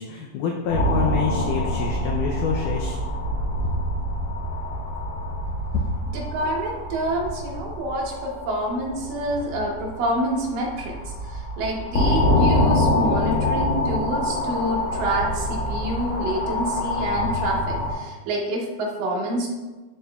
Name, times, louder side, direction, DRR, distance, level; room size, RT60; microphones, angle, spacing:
voice 1, 0.0-3.0, left 6 dB, 85° left, 1 dB, 1.8 m, -27 dB
sound 1, 0.7-17.9, left 1 dB, 60° left, 2.0 m, -25 dB
voice 2, 6.1-19.5, right 1 dB, 75° right, -1 dB, 2.4 m, -27 dB
11.0 x 4.1 x 2.3 m, 1.2 s
omnidirectional pair, 4.3 m